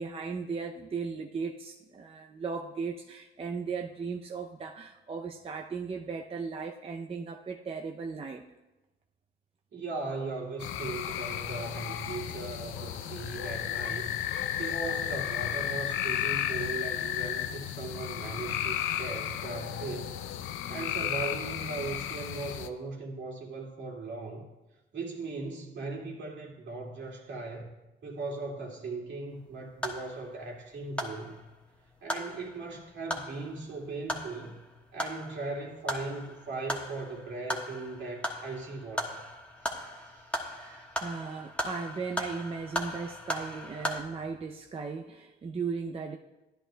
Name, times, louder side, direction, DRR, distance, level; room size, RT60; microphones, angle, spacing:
voice 1, 0.0-8.5 40.5-46.2, right 5 dB, 30° right, 2 dB, 0.5 m, -37 dB
voice 2, 9.7-14.2 14.6-20.2 20.4-24.5 24.9-27.7 28.0-31.4 32.0-34.6 34.9-39.2 39.6-41.0, right 3 dB, 65° right, -1 dB, 2.2 m, -38 dB
sound 1, 10.6-22.7, left 11 dB, 90° left, 0.5 m, -33 dB
sound 2, 29.3-44.0, left 1 dB, 5° left, 1.3 m, -38 dB
13.5 x 10.0 x 2.2 m, 1.0 s
cardioid pair, 90°, 20 cm